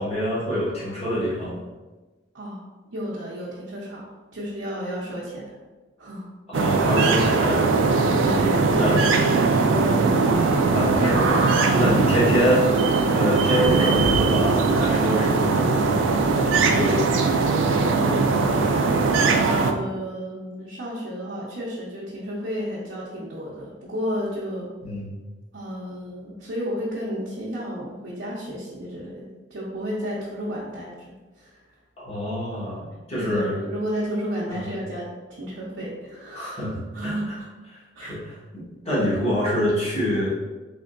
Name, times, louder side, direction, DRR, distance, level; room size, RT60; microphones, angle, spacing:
voice 1, 0.0-1.6 6.5-7.6 8.8-9.0 10.3-11.4 11.7-12.7 13.1-15.7 16.4-17.1 24.8-25.1 32.0-33.5 34.5-34.6 36.3-37.4 37.7-40.3, equal, 30° left, -8 dB, 1.3 m, -26 dB
voice 2, 2.9-4.1 4.3-5.5 6.0-6.2 7.7-9.7 17.9-18.8 19.4-24.7 25.5-31.6 33.2-36.5 36.9-37.3 37.9-38.3, equal, 70° right, -7 dB, 0.7 m, -32 dB
sound 1, 6.5-19.7, right 4 dB, 85° right, 0.4 m, -20 dB
3.6 x 3.3 x 2.5 m, 1.2 s
head